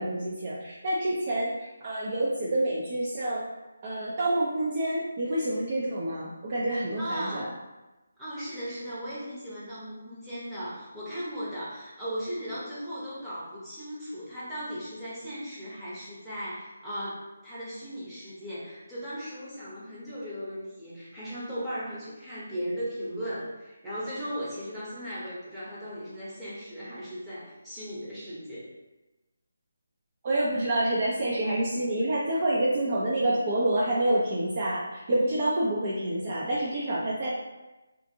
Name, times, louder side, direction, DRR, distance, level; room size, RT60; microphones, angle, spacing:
voice 1, 0.0-3.4 3.8-7.5 30.2-37.3, right 1 dB, 35° right, -6 dB, 0.4 m, -27 dB
voice 2, 7.0-7.5 8.2-28.7, equal, 5° right, -12 dB, 0.7 m, -37 dB
2.5 x 2.5 x 2.7 m, 1.1 s
figure-of-eight pair, 165°, 0 cm